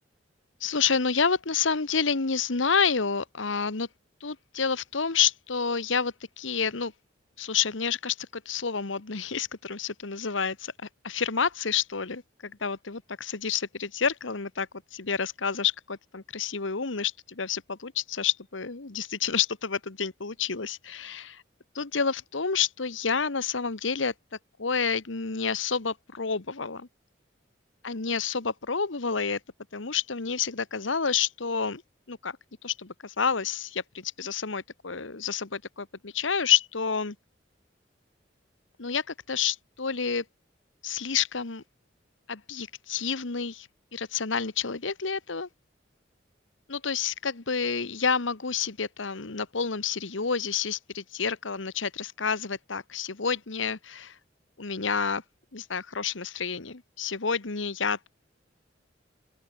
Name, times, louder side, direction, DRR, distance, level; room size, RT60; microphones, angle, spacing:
voice 1, 0.6-3.9 4.2-6.9 7.4-10.7 11.0-21.4 21.7-24.1 24.6-26.9 27.8-29.4 29.7-31.8 32.1-32.4 32.6-37.1 38.8-40.2 40.8-41.6 42.3-45.5 46.7-54.1 54.6-55.2 55.5-58.1, left 6 dB, 90° left, 1.4 m, -29 dB
open air
head